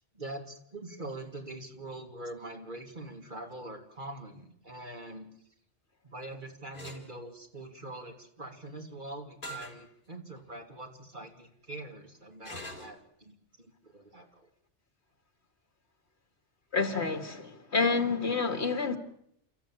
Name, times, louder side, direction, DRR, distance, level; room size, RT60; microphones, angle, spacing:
voice 1, 0.1-5.3 6.0-14.5, right 2 dB, 45° right, 3.1 m, -44 dB
sound 1, 6.7-7.0 9.4-9.8 10.4-10.5 12.4-13.0, equal, 45° left, 4.1 m, -42 dB
voice 2, 16.7-19.0, left 4 dB, 65° left, 2.4 m, -28 dB
29.5 x 14.0 x 9.0 m
omnidirectional pair, 1.2 m